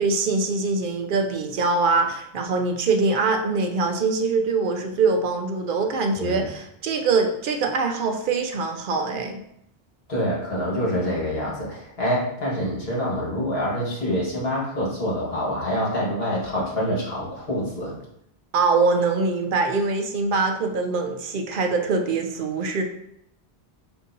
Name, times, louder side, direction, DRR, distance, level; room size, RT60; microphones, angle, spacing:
voice 1, 0.0-9.4 18.5-22.8, right 4 dB, 60° right, 4 dB, 0.7 m, -23 dB
voice 2, 6.1-6.5 10.1-17.9, equal, 70° left, -5 dB, 1.7 m, -26 dB
6.7 x 2.6 x 2.6 m, 0.77 s
omnidirectional pair, 1.0 m